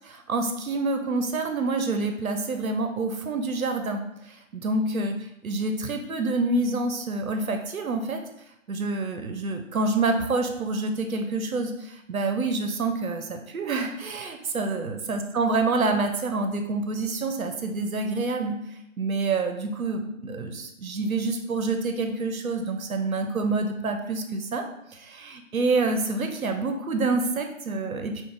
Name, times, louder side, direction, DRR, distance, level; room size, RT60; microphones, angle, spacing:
voice 1, 0.3-4.0 4.5-5.1 5.4-8.2 8.7-11.7 12.1-18.6 19.0-24.7 25.1-28.2, right 3 dB, 90° right, 5 dB, 0.7 m, -27 dB
4.5 x 2.4 x 3.8 m, 0.84 s
figure-of-eight pair, 170°, 40 cm